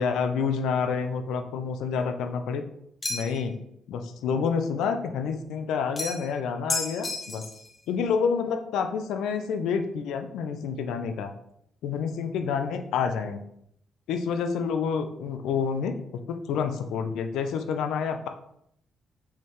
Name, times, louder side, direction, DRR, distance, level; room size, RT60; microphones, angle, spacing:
voice 1, 0.0-2.6 3.1-3.6 3.9-7.4 7.9-11.3 11.8-13.4 14.1-16.0 16.3-18.3, left 6 dB, 85° left, 7 dB, 0.5 m, -28 dB
sound 1, 3.0-3.5 6.0-6.3 6.7-7.7, left 2 dB, 25° left, 0.9 m, -32 dB
4.3 x 3.6 x 3.2 m, 0.73 s
cardioid pair, 90°, 0 cm